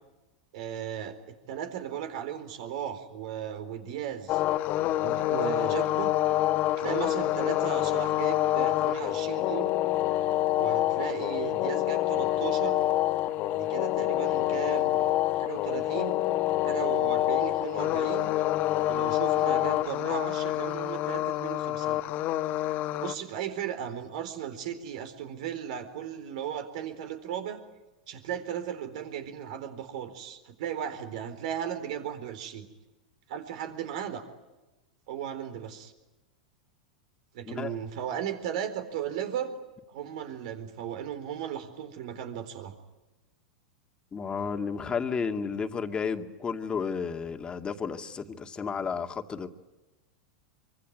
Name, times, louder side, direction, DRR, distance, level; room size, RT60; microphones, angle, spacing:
voice 1, 0.5-1.2 1.5-4.4 5.0-6.1 6.8-9.7 10.5-12.8 13.5-15.0 15.4-16.2 16.6-18.3 18.9-22.0 23.0-27.6 28.1-32.7 33.3-34.2 35.1-35.9 37.3-39.5 39.9-42.7, right 9 dB, 65° right, 9 dB, 4.1 m, -36 dB
sound 1, 4.3-23.1, left 14 dB, 45° left, 1.5 m, -27 dB
voice 2, 44.1-49.5, left 5 dB, 20° left, 6 dB, 2.1 m, -32 dB
25.0 x 25.0 x 9.5 m, 1.1 s
hypercardioid pair, 105°, 4 cm